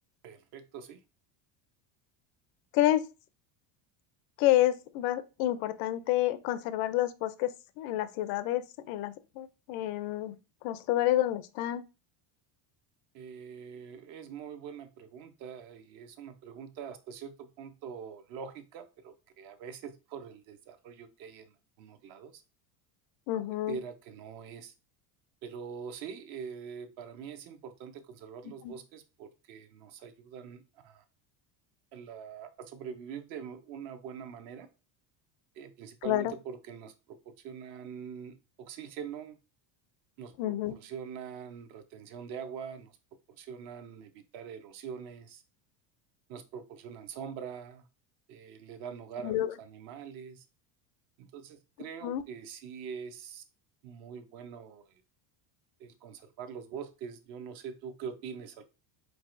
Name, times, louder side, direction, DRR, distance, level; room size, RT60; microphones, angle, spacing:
voice 1, 0.2-1.0 13.1-22.4 23.3-24.7 25.4-31.0 31.9-34.7 35.5-39.4 40.2-42.9 43.3-45.4 46.3-47.9 48.3-50.4 51.2-53.4 53.8-55.0 55.8-58.6, right 7 dB, 45° right, 0.7 m, -44 dB
voice 2, 2.7-3.1 4.4-7.5 7.8-10.3 10.6-11.8 23.3-23.8 28.6-28.7 36.0-36.3 40.4-40.8 49.2-49.5 52.0-52.2, left 14 dB, 60° left, 0.5 m, -29 dB
4.7 x 4.2 x 2.5 m
cardioid pair, 170°, 50 cm